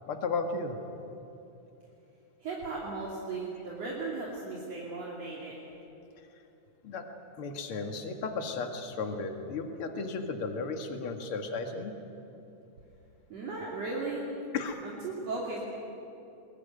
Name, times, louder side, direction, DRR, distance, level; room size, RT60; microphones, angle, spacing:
voice 1, 0.1-0.8 6.8-7.1 7.4-11.9 14.5-14.8, left 4 dB, 50° left, 5 dB, 2.5 m, -34 dB
voice 2, 2.4-5.5 13.3-14.3 14.8-15.6, right 3 dB, 60° right, -5 dB, 3.9 m, -36 dB
22.0 x 21.0 x 9.5 m, 2.9 s
omnidirectional pair, 3.4 m